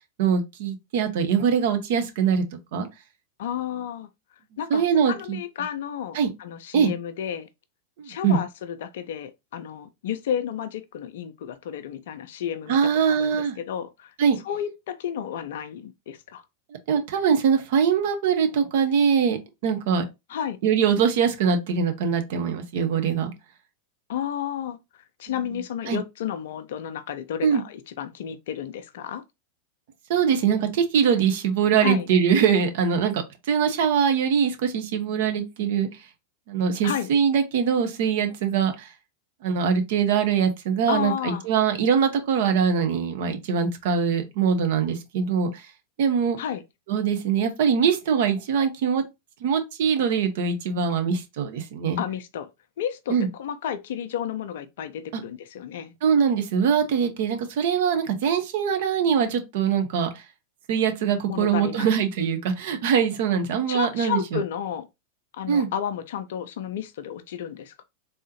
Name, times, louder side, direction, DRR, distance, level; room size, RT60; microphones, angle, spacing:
voice 1, 0.2-2.4 2.7-2.9 4.7-5.4 6.1-6.3 6.7-6.9 8.0-8.4 12.7-13.6 14.2-14.4 16.9-19.4 19.6-20.0 20.6-23.3 25.9-26.0 27.4-27.6 30.1-35.9 36.5-38.9 39.4-45.6 46.0-46.4 46.9-49.0 49.4-52.0 53.1-53.3 55.1-55.2 56.0-60.2 60.7-64.4 65.5-65.7, right 7 dB, 55° right, 0.7 m, -22 dB
voice 2, 3.4-4.1 4.6-7.5 8.0-14.1 14.4-16.4 20.3-20.6 24.1-29.2 31.8-32.1 36.8-37.1 40.9-41.4 46.4-46.6 52.0-52.5 52.8-55.9 61.3-61.9 63.7-64.9 65.3-67.8, left 9 dB, 55° left, 0.4 m, -32 dB
3.5 x 2.7 x 2.8 m
figure-of-eight pair, 90°, 0 cm